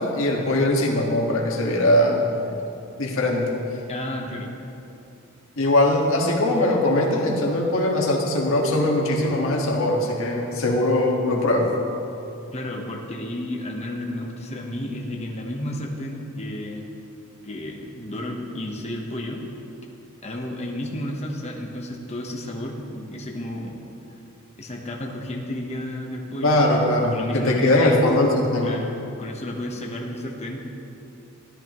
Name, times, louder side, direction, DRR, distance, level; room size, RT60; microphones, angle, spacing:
voice 1, 0.0-2.5 3.0-3.5 5.6-11.7 26.4-28.8, left 1 dB, 65° left, -1 dB, 1.7 m, -21 dB
voice 2, 3.9-4.5 12.5-16.9 17.4-19.4 20.2-23.8 24.6-26.6 27.1-28.0 28.6-30.6, left 1 dB, 30° left, 0 dB, 1.1 m, -32 dB
14.0 x 12.5 x 3.1 m, 2.7 s
head